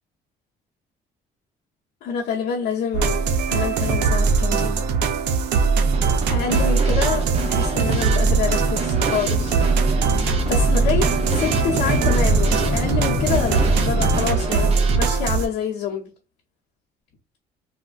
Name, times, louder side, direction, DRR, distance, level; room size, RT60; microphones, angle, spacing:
voice 1, 2.0-4.8 6.3-9.6 10.5-16.1, left 7 dB, 85° left, 0.8 m, -27 dB
sound 1, 2.9-15.5, right 5 dB, 85° right, 0.5 m, -21 dB
Drum kit / Snare drum, 5.9-15.0, right 4 dB, 40° right, 0.7 m, -30 dB
sound 2, 7.4-14.2, left 3 dB, 30° left, 0.4 m, -28 dB
3.4 x 2.1 x 2.3 m
cardioid pair, 110°, 17 cm